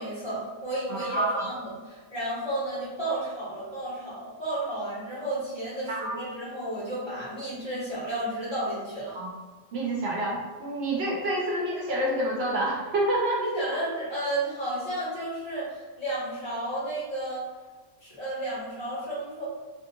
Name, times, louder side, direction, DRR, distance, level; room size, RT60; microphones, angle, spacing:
voice 1, 0.0-9.2 13.4-17.4 18.0-19.4, right 1 dB, 25° left, -11 dB, 1.5 m, -32 dB
voice 2, 0.9-1.5 5.9-6.2 9.1-9.3 9.7-13.4 13.7-13.8, right 1 dB, 80° right, -3 dB, 1.0 m, -28 dB
3.0 x 2.8 x 2.4 m, 1.3 s
omnidirectional pair, 1.1 m